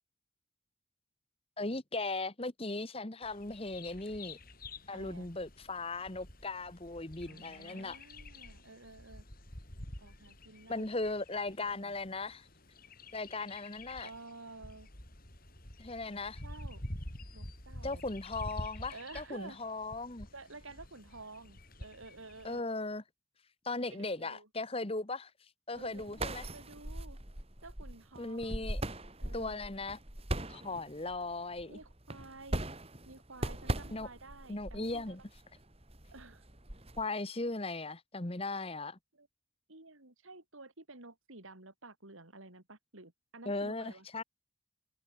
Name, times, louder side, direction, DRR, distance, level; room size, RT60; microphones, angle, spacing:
voice 1, 1.6-4.4 4.9-8.0 10.7-12.5 13.1-14.1 15.8-16.4 17.8-20.3 22.4-23.0 23.6-25.3 25.7-26.5 28.2-28.8 29.3-30.0 30.5-31.8 33.9-34.1 34.5-35.2 37.0-39.0 43.4-44.2, left 2 dB, 30° left, 1.3 m, -38 dB
Bird vocalization bird call bird song, 3.2-22.6, left 1 dB, 45° left, 5.4 m, -49 dB
voice 2, 4.9-5.3 7.3-9.2 10.0-10.9 11.3-12.0 14.0-14.9 16.4-16.8 17.3-18.1 18.9-19.6 20.3-22.6 23.9-24.5 25.8-27.2 27.6-28.5 29.2-29.6 31.7-32.7 33.1-35.2 36.1-36.4 39.1-39.3 39.7-44.1, right 3 dB, 80° right, 4.0 m, -52 dB
sound 1, 25.7-37.0, right 1 dB, 30° right, 3.3 m, -40 dB
head